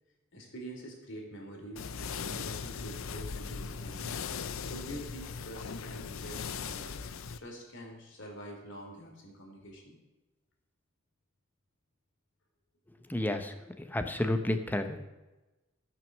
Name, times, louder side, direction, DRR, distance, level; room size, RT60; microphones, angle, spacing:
voice 1, 0.3-7.0 7.4-10.0, right 1 dB, 60° left, 1 dB, 3.0 m, -46 dB
sound 1, 1.8-7.4, left 5 dB, 75° left, 0.6 m, -39 dB
voice 2, 13.1-15.0, left 1 dB, 10° left, 7 dB, 0.8 m, -31 dB
13.5 x 6.2 x 6.5 m, 1.1 s
head